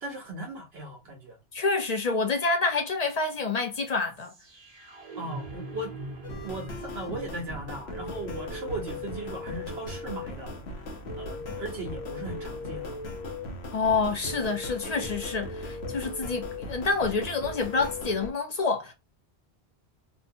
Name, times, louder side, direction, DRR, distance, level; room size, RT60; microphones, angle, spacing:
voice 1, 0.0-1.4 5.2-5.9 6.4-10.9 11.2-13.0, right 2 dB, 70° right, 0.9 m, -38 dB
voice 2, 1.5-4.3 13.7-18.9, left 4 dB, 45° left, 0.6 m, -28 dB
sound 1, 3.0-13.0, right 2 dB, 35° right, 0.8 m, -45 dB
sound 2, 6.2-18.3, left 2 dB, 70° left, 1.0 m, -37 dB
2.8 x 2.2 x 2.6 m
omnidirectional pair, 1.1 m